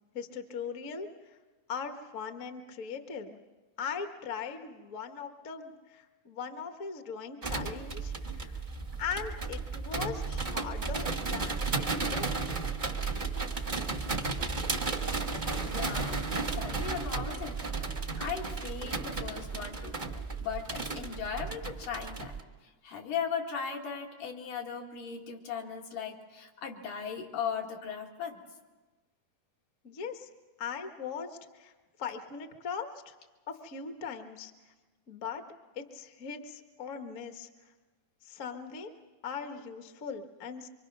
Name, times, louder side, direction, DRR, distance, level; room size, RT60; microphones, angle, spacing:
voice 1, 0.1-1.1 1.7-3.4 3.8-8.6 9.0-11.6 11.9-12.4 29.8-30.3 30.6-31.7 32.0-33.1 33.5-34.5 35.1-35.4 35.7-37.5 38.2-38.9 39.2-40.7, left 6 dB, 55° left, 6 dB, 0.8 m, -39 dB
sound 1, 7.4-22.4, right 4 dB, 50° right, 0.5 m, -34 dB
voice 2, 15.2-17.6 18.2-20.0 20.4-22.3 22.8-28.4, left 7 dB, 85° left, 0 dB, 3.6 m, -38 dB
25.0 x 25.0 x 6.0 m, 1.3 s
omnidirectional pair, 3.7 m